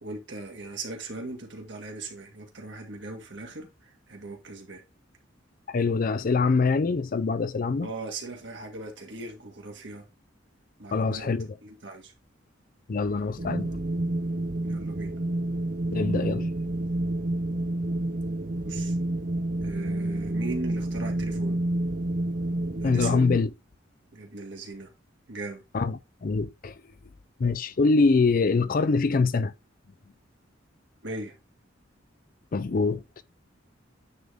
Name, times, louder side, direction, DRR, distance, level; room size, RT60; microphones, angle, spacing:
voice 1, 0.0-4.8 7.8-10.0 10.8-11.3 11.6-12.1 14.6-15.1 18.6-18.9 19.6-21.6 22.8-23.3 24.1-24.9 25.3-25.6 31.0-31.3, right 2 dB, 65° right, 2.0 m, -38 dB
voice 2, 5.7-7.9 10.9-11.6 12.9-13.8 15.9-16.5 22.8-23.5 25.7-26.8 27.4-29.5 32.5-33.0, left 4 dB, 45° left, 0.4 m, -24 dB
Wind, 13.4-23.4, right 1 dB, 45° right, 0.5 m, -29 dB
9.4 x 3.9 x 3.5 m
head